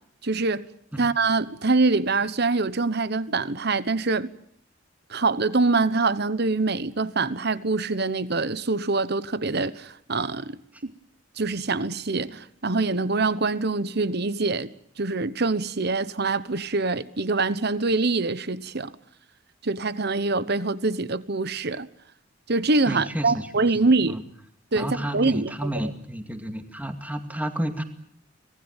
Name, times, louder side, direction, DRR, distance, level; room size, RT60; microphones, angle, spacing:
voice 1, 0.2-0.7 1.0-4.3 5.1-10.9 11.4-14.7 15.0-18.9 19.6-21.9 22.5-24.2 24.7-25.5, right 3 dB, 55° right, 1.2 m, -24 dB
voice 2, 22.9-24.2 24.8-27.8, right 1 dB, 10° right, 2.3 m, -31 dB
26.0 x 19.0 x 9.0 m
head